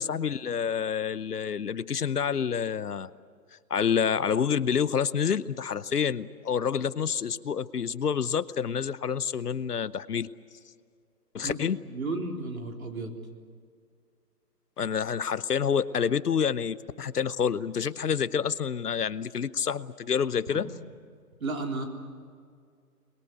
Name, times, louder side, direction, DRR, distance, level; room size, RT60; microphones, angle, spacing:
voice 1, 0.0-3.1 3.7-10.3 11.3-11.8 14.8-20.7, left 7 dB, 70° left, 16 dB, 0.9 m, -28 dB
voice 2, 11.9-13.2 20.5-20.6 21.4-21.8, right 3 dB, 55° right, 2 dB, 3.9 m, -33 dB
27.5 x 22.0 x 8.3 m, 2.1 s
hypercardioid pair, 170°, 49 cm